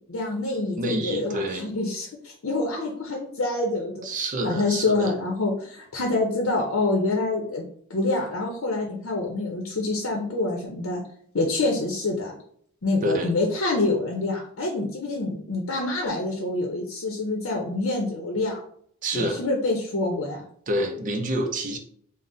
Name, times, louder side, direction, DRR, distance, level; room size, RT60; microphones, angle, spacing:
voice 1, 0.1-4.1 4.4-7.6 7.9-11.0 11.3-12.4 12.8-18.6 19.1-20.4, left 2 dB, 70° left, 0 dB, 0.7 m, -26 dB
voice 2, 0.8-1.7 4.0-5.1 13.0-13.3 19.0-19.4 20.7-21.8, right 1 dB, 40° right, 5 dB, 0.4 m, -27 dB
3.8 x 2.1 x 3.8 m, 0.62 s
head